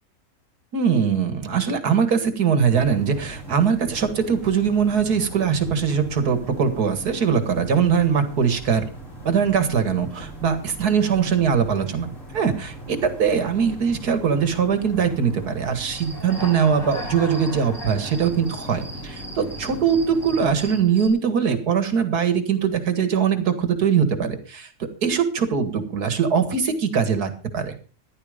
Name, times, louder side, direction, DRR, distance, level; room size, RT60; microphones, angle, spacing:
voice 1, 0.7-8.8 9.3-27.7, right 7 dB, 90° right, 9 dB, 2.3 m, -22 dB
sound 1, 2.6-20.8, right 1 dB, 55° left, 5.2 m, -39 dB
Human voice / Cricket, 15.9-21.1, equal, 35° left, 4.1 m, -38 dB
14.5 x 11.0 x 5.1 m, 0.36 s
omnidirectional pair, 1.6 m